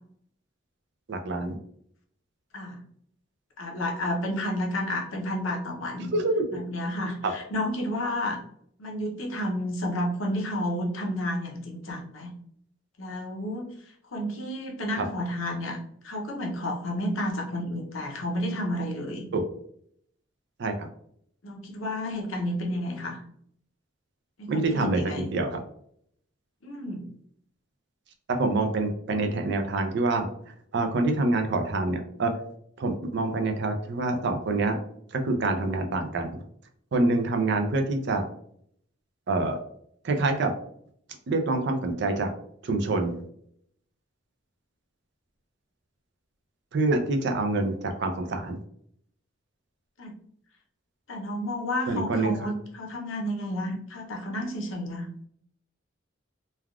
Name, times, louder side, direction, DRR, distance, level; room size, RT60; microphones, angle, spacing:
voice 1, 1.1-1.5 6.1-6.5 7.2-7.3 15.0-15.1 19.3-19.4 20.6-20.9 24.5-25.6 28.3-30.3 30.7-32.4 32.8-34.8 35.1-36.4 36.9-38.2 39.3-39.6 40.0-40.5 41.3-42.3 42.6-43.2 46.7-48.6 51.9-52.5, right 2 dB, 60° right, 5 dB, 0.4 m, -26 dB
voice 2, 3.6-6.1 6.5-8.4 8.8-12.3 13.0-13.7 14.1-15.8 16.0-19.3 21.4-23.2 24.4-25.3 26.6-27.1 50.0-50.1 51.1-55.1, left 1 dB, 90° left, 1 dB, 0.7 m, -31 dB
3.3 x 2.3 x 2.3 m, 0.67 s
head